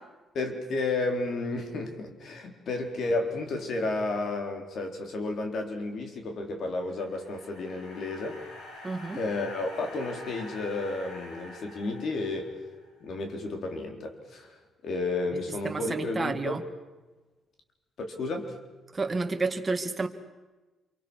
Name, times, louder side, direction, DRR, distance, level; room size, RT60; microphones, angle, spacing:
voice 1, 0.3-8.4 9.1-12.5 13.0-14.6 14.8-16.7 18.0-18.6, left 2 dB, 60° left, 4 dB, 4.0 m, -32 dB
sound 1, 6.5-12.9, left 1 dB, 90° left, 6.4 m, -46 dB
voice 2, 8.8-9.2 15.6-16.6 18.9-20.1, right 3 dB, 25° right, 6 dB, 2.0 m, -30 dB
27.0 x 24.0 x 6.4 m, 1.2 s
cardioid pair, 90°, 0 cm